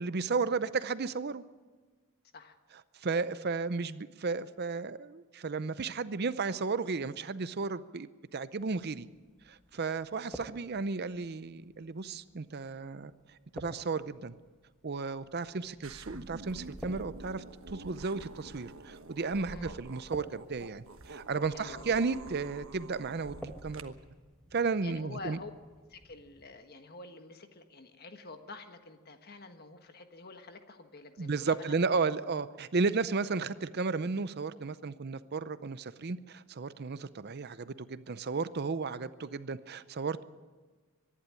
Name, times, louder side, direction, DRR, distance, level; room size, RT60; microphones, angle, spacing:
voice 1, 0.0-1.4 3.0-9.1 9.5-13.1 13.5-14.3 14.8-23.9 24.5-25.4 31.2-40.2, right 4 dB, 50° right, 14 dB, 0.6 m, -34 dB
sound 1, 8.6-26.5, equal, 5° left, 1.4 m, -53 dB
sound 2, 15.8-23.8, right 2 dB, 70° right, 1.3 m, -47 dB
voice 2, 21.5-21.9 24.8-25.5 25.9-31.7, left 3 dB, 45° left, 7 dB, 1.5 m, -48 dB
23.5 x 11.0 x 9.8 m, 1.4 s
head